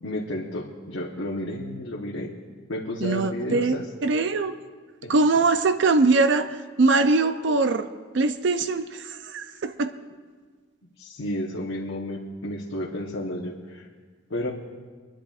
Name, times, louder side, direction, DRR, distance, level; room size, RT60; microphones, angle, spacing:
voice 1, 0.0-2.3 2.7-3.8 5.0-5.1 11.0-13.9 14.3-14.5, left 1 dB, 80° left, -3 dB, 1.0 m, -32 dB
voice 2, 3.0-4.5 5.1-7.9 8.1-9.9, right 3 dB, 60° right, 9 dB, 0.5 m, -22 dB
29.0 x 10.5 x 2.4 m, 1.5 s
head